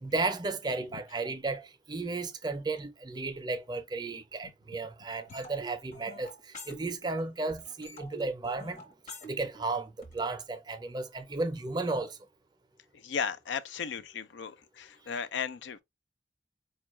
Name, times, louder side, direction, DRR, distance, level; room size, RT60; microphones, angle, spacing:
voice 1, 0.0-6.3 6.7-8.8 9.3-12.2, right 3 dB, 25° right, 0.4 m, -34 dB
sound 1, 5.3-7.2 7.5-10.3, equal, 45° left, 1.0 m, -47 dB
voice 2, 13.0-15.8, left 6 dB, 80° left, 0.4 m, -35 dB
4.4 x 2.3 x 3.0 m
head